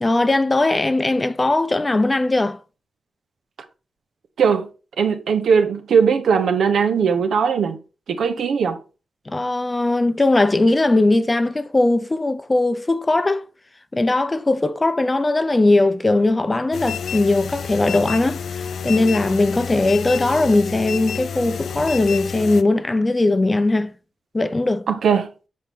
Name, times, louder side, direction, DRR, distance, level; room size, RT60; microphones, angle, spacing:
voice 1, 0.0-2.6 9.3-13.5 13.9-23.9 24.3-24.8, left 2 dB, 20° left, 0.5 m, -19 dB
voice 2, 5.0-7.8 8.1-8.8 24.9-25.3, right 6 dB, 90° right, 0.8 m, -19 dB
sound 1, 16.7-22.6, left 7 dB, 85° left, 0.4 m, -29 dB
7.5 x 4.3 x 3.5 m
wide cardioid pair, 135°, 0 cm